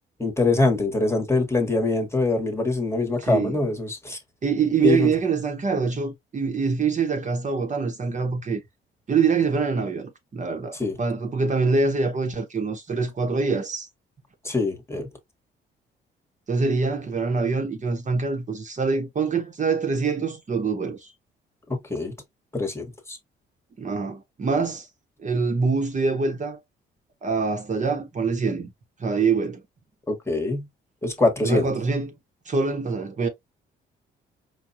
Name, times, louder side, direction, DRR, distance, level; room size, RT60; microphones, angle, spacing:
voice 1, 0.2-4.2 4.8-5.1 10.8-10.9 14.4-15.1 21.7-22.1 22.5-23.2 30.1-30.7 31.0-31.7, left 3 dB, 15° left, 1.2 m, -24 dB
voice 2, 3.2-3.6 4.4-8.6 9.1-13.9 16.5-21.0 23.8-24.9 25.2-26.6 27.2-28.7 29.0-29.6 31.4-32.1 32.5-33.3, right 4 dB, 40° right, 1.0 m, -25 dB
4.8 x 2.3 x 2.7 m
cardioid pair, 90°, 20 cm